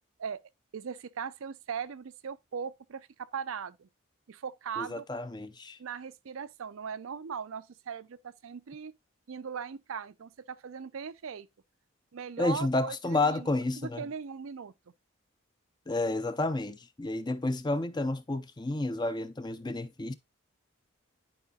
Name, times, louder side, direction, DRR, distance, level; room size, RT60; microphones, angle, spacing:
voice 1, 0.7-3.9 4.3-5.0 5.8-8.9 9.3-11.5 12.1-14.7, right 6 dB, 80° right, 0.5 m, -39 dB
voice 2, 4.8-5.8 12.4-14.1 15.9-20.1, left 2 dB, 20° left, 0.5 m, -31 dB
10.5 x 4.8 x 2.3 m
head